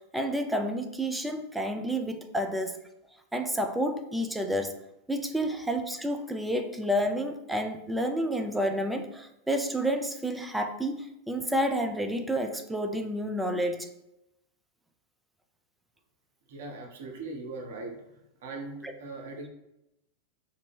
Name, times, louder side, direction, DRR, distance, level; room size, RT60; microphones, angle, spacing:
voice 1, 0.1-2.8 3.3-4.7 5.1-13.9 18.8-18.9, equal, 5° right, 5 dB, 0.3 m, -30 dB
voice 2, 16.5-18.1 18.4-19.5, right 3 dB, 55° right, 1 dB, 0.6 m, -40 dB
2.5 x 2.1 x 3.3 m, 0.86 s
figure-of-eight pair, 90°, 0 cm